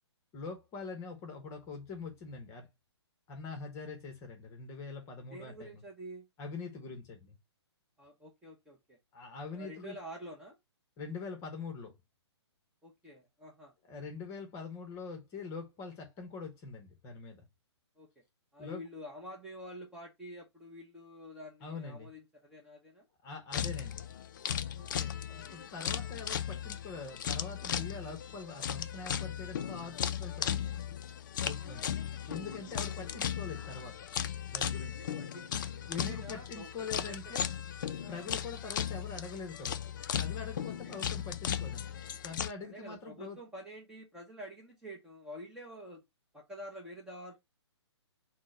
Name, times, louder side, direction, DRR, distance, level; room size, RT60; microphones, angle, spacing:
voice 1, 0.3-2.7 3.3-5.8 6.4-7.4 9.1-10.0 11.0-11.9 13.8-17.5 18.6-18.8 21.6-22.1 23.2-24.1 25.3-30.9 31.4-32.0 32.3-34.0 34.5-35.1 35.9-37.5 38.1-39.8 40.2-43.4, left 4 dB, 20° left, 1.0 m, -43 dB
voice 2, 5.3-6.3 8.0-9.0 9.5-10.6 12.8-13.7 18.0-18.1 18.5-23.0 24.7-25.1 31.6-31.9 32.7-32.8 35.0-37.2 38.0-38.4 40.8-41.0 42.6-46.0 46.3-47.4, equal, 5° right, 0.8 m, -48 dB
sound 1, 23.5-42.5, left 9 dB, 45° left, 0.4 m, -36 dB
4.2 x 2.2 x 4.3 m
figure-of-eight pair, 125°, 15 cm